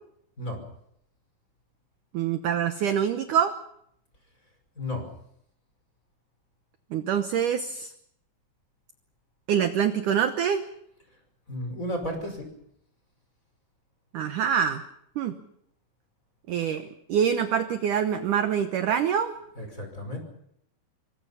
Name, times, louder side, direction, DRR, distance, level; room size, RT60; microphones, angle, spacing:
voice 1, 2.1-3.5 6.9-7.9 9.5-10.6 14.1-14.8 15.2-15.4 16.5-19.3, right 8 dB, 70° right, 8 dB, 1.9 m, -25 dB
voice 2, 4.8-5.1 11.5-12.5 19.6-20.2, left 1 dB, 20° left, 4 dB, 5.5 m, -33 dB
27.0 x 24.0 x 5.7 m, 0.74 s
omnidirectional pair, 5.0 m